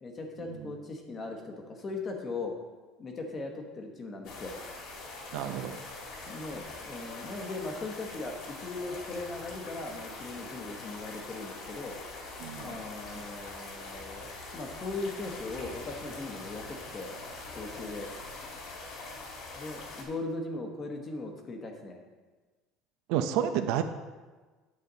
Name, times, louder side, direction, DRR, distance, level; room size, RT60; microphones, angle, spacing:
voice 1, 0.0-2.5 3.0-4.5 6.3-11.9 12.6-17.1 17.6-18.1 19.6-22.0, left 3 dB, 25° left, 3 dB, 1.1 m, -39 dB
sound 1, 4.2-20.0, left 3 dB, 50° left, 2.1 m, -43 dB
voice 2, 5.3-5.8 12.4-12.8 23.1-23.8, right 10 dB, 70° right, 9 dB, 0.6 m, -30 dB
9.6 x 6.8 x 3.9 m, 1.3 s
cardioid pair, 165°, 0 cm